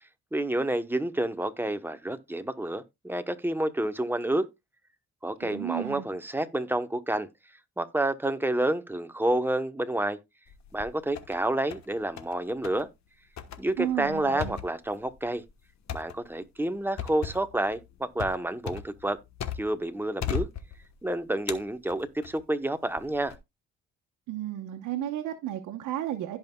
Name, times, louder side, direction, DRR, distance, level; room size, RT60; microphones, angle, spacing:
voice 1, 0.3-4.5 5.2-7.3 7.8-10.2 10.7-12.9 13.6-15.4 15.9-19.2 19.5-20.5 21.0-23.4, right 1 dB, 5° right, 1.0 m, -29 dB
voice 2, 5.4-6.1 13.8-14.6 24.3-26.4, right 12 dB, 85° right, 1.1 m, -33 dB
sound 1, 10.5-11.4 11.7-12.4 12.6-12.9 13.4-19.9 20.2-21.0 21.5-22.4 23.0-23.4, left 8 dB, 65° left, 1.3 m, -37 dB
16.5 x 5.5 x 2.3 m
cardioid pair, 90°, 30 cm